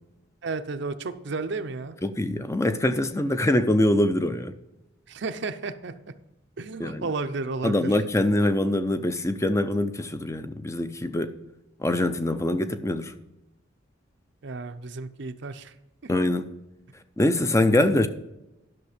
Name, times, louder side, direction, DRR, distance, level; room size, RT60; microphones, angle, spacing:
voice 1, 0.4-1.9 5.1-5.9 6.6-8.0 14.4-15.7, right 3 dB, 60° right, 0.7 m, -32 dB
voice 2, 2.0-4.5 6.8-7.0 7.6-11.3 11.8-13.1 16.1-16.5 17.2-18.1, left 1 dB, 15° left, 0.5 m, -24 dB
11.0 x 6.3 x 5.0 m
head